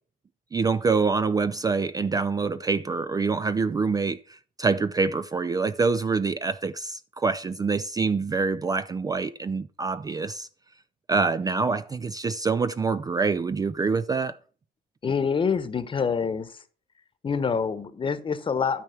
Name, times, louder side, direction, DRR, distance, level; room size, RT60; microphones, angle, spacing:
voice 1, 0.5-10.5 11.1-14.4, right 4 dB, 20° right, 0.4 m, -26 dB
voice 2, 15.0-16.6 17.2-18.8, left 6 dB, 30° left, 1.1 m, -26 dB
12.5 x 4.6 x 5.8 m
cardioid pair, 110°, 17 cm